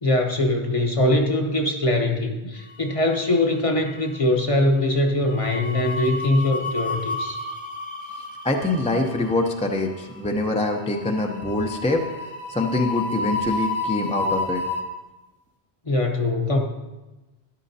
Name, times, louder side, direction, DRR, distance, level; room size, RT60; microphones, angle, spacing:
voice 1, 0.0-7.4 15.9-16.6, left 1 dB, 30° left, 2 dB, 0.9 m, -22 dB
sound 1, 2.7-3.5 3.8-4.1 5.2-14.8, left 3 dB, 75° left, 1.8 m, -31 dB
voice 2, 8.4-14.6, left 2 dB, 10° left, 2 dB, 0.5 m, -24 dB
11.5 x 11.0 x 2.8 m, 1.1 s
omnidirectional pair, 1.1 m